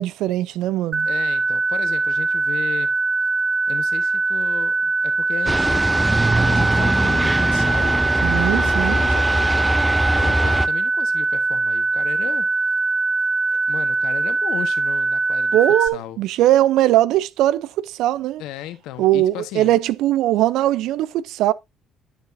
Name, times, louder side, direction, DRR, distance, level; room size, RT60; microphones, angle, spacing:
voice 1, 0.0-1.1 8.2-9.0 15.5-18.4 19.0-21.5, right 14 dB, 70° right, 0.6 m, -20 dB
sound 1, 0.9-15.9, right 3 dB, 35° right, 1.0 m, -22 dB
voice 2, 1.0-2.9 3.7-6.0 6.4-8.0 8.3-9.8 10.1-12.7 13.5-16.2 18.4-19.7, left 13 dB, 75° left, 1.2 m, -35 dB
sound 2, 5.5-10.7, right 1 dB, 10° right, 0.8 m, -21 dB
11.5 x 6.5 x 2.7 m
hypercardioid pair, 60°, 0 cm